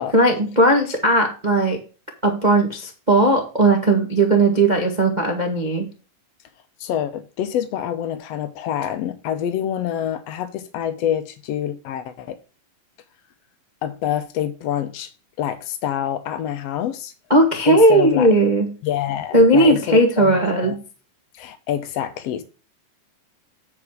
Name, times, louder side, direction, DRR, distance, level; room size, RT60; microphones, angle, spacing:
voice 1, 0.1-1.8 2.2-5.9 17.3-18.7 19.3-20.8, right 1 dB, 35° right, 0.7 m, -17 dB
voice 2, 6.8-12.4 13.8-15.1 15.4-17.1 17.6-18.3 18.8-20.3 20.6-20.7 21.3-22.4, left 10 dB, 85° left, 1.4 m, -26 dB
9.7 x 4.9 x 4.8 m
omnidirectional pair, 4.0 m